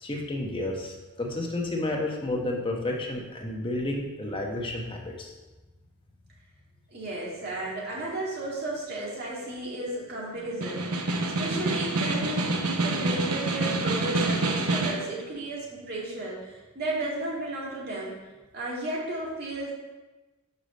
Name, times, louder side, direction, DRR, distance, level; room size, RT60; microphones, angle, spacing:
voice 1, 0.0-5.3, left 1 dB, 25° left, -1 dB, 1.1 m, -31 dB
voice 2, 6.9-18.2 18.5-19.7, right 1 dB, 45° right, -5 dB, 2.3 m, -34 dB
Snare drum, 10.5-15.1, right 2 dB, 90° right, 0.9 m, -27 dB
5.5 x 4.9 x 6.5 m, 1.2 s
head